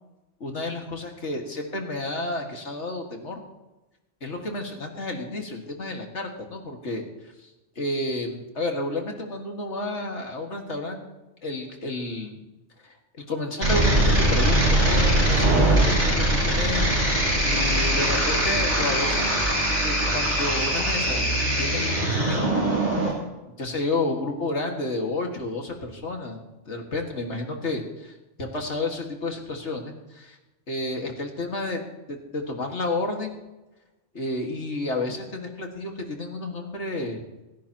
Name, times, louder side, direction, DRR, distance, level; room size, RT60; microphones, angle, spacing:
voice 1, 0.4-3.4 4.2-7.5 7.8-11.0 11.4-12.4 12.8-16.9 17.4-19.3 19.8-21.3 21.5-22.6 23.6-30.4 30.7-31.8 32.3-33.4 34.1-37.2, left 2 dB, 65° left, 2 dB, 2.3 m, -31 dB
sound 1, 13.6-23.1, right 1 dB, 35° right, 5.4 m, -22 dB
29.5 x 10.0 x 3.0 m, 1.0 s
omnidirectional pair, 1.3 m